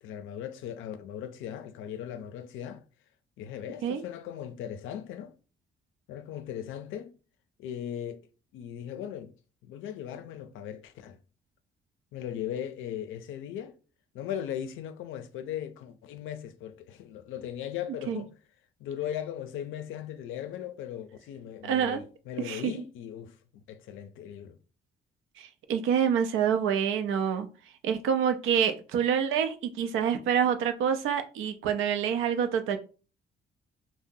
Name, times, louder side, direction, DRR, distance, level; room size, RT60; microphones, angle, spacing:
voice 1, 0.0-2.8 3.4-5.4 6.1-7.2 7.6-9.3 9.6-11.2 12.1-13.7 14.1-18.3 18.8-24.6, left 10 dB, 85° left, 0.4 m, -38 dB
voice 2, 21.6-22.0 22.4-22.7 25.4-27.5 27.8-32.8, right 8 dB, 90° right, 0.5 m, -27 dB
2.7 x 2.1 x 3.6 m
cardioid pair, 90°, 20 cm